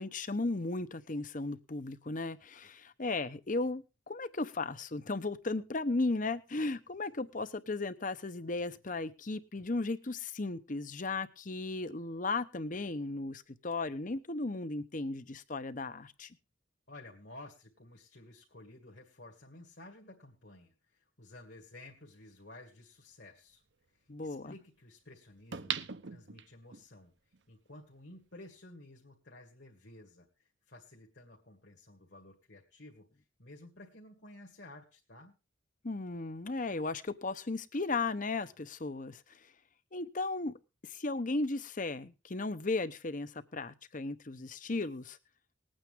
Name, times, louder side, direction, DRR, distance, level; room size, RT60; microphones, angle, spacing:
voice 1, 0.0-16.4 24.1-24.5 35.8-39.4 39.9-40.5 40.8-45.2, left 3 dB, 40° left, 14 dB, 0.9 m, -36 dB
voice 2, 16.9-23.6 23.9-25.8 26.0-27.1 27.5-33.1 33.4-35.4, left 2 dB, 60° left, 0 dB, 2.2 m, -53 dB
sound 1, 21.9-22.0 25.5-26.8 27.3-27.4, right 8 dB, 60° right, 0.8 m, -38 dB
20.0 x 8.9 x 3.6 m, 0.29 s
head